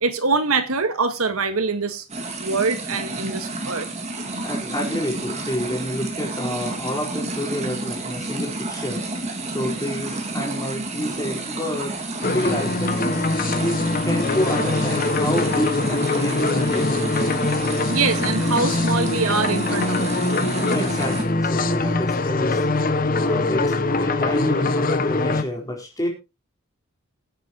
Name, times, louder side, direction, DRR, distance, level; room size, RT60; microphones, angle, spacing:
voice 1, 0.0-2.0 2.4-3.9 17.9-20.2, right 4 dB, 75° right, 1.6 m, -24 dB
sound 1, 2.1-21.2, right 2 dB, 30° right, 2.1 m, -30 dB
voice 2, 4.4-9.0 9.5-11.9 12.3-13.0 13.3-17.2 20.7-26.1, equal, 15° left, 4.4 m, -29 dB
sound 2, 12.2-25.4, left 3 dB, 40° left, 0.8 m, -23 dB
21.5 x 8.1 x 3.0 m
head